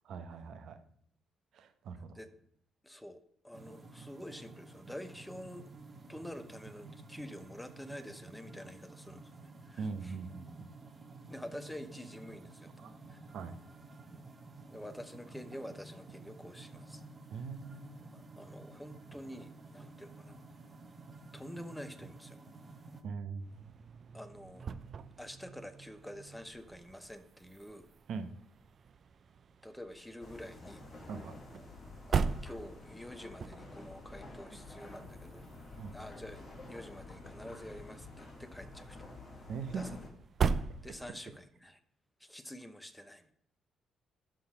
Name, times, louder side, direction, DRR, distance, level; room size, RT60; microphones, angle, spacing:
voice 1, 0.0-0.8 1.5-2.2 9.8-10.7 12.8-12.9 13.3-13.5 17.3-17.9 23.0-23.5 28.1-28.3 31.1-31.3 35.8-35.9 39.5-39.8, right 5 dB, 70° right, 9 dB, 0.9 m, -41 dB
voice 2, 2.8-5.7 6.1-10.2 11.3-13.2 14.1-14.2 14.7-17.0 18.1-20.4 21.3-22.4 24.1-24.7 25.2-27.9 29.6-30.8 32.1-35.4 35.9-36.4 36.7-39.1 39.8-39.9 40.8-41.8 42.2-43.3, equal, 5° left, 10 dB, 0.8 m, -48 dB
sound 1, 3.5-23.0, right 3 dB, 35° right, 1.1 m, -52 dB
sound 2, 23.4-41.4, right 6 dB, 50° right, 0.5 m, -41 dB
sound 3, 30.2-40.1, left 2 dB, 35° left, 2.9 m, -50 dB
11.5 x 3.9 x 5.9 m, 0.68 s
cardioid pair, 90°, 0 cm